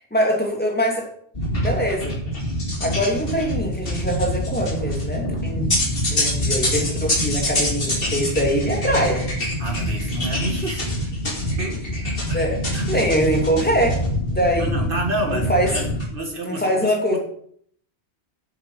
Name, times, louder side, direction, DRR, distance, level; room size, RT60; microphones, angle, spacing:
voice 1, 0.1-1.1 1.6-2.1 2.8-5.7 6.1-9.3 12.3-14.0 14.3-14.9 15.3-15.7 16.4-17.2, equal, 10° left, 0 dB, 2.4 m, -23 dB
sound 1, 1.3-16.1, left 1 dB, 55° left, 2.5 m, -25 dB
voice 2, 9.6-11.0 11.6-12.4 12.7-12.8 14.6-17.2, right 1 dB, 55° right, 3 dB, 2.0 m, -29 dB
8.2 x 7.3 x 6.4 m, 0.64 s
omnidirectional pair, 1.1 m